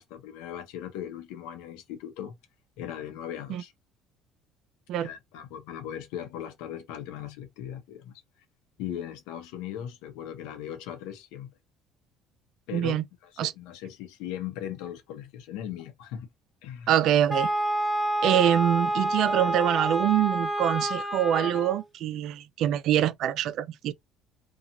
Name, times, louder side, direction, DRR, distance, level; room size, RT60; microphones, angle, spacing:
voice 1, 0.0-2.3 2.8-3.7 5.0-8.1 8.8-11.5 12.7-13.0 13.2-16.3 16.6-16.9, left 10 dB, 80° left, 0.8 m, -38 dB
voice 2, 12.7-13.0 13.4-13.5 16.9-17.5 18.2-23.9, right 11 dB, 65° right, 0.3 m, -25 dB
Wind instrument woodwind instrument, 17.3-21.8, right 1 dB, 15° left, 0.9 m, -28 dB
2.7 x 2.3 x 2.8 m
supercardioid pair, 75°, 0 cm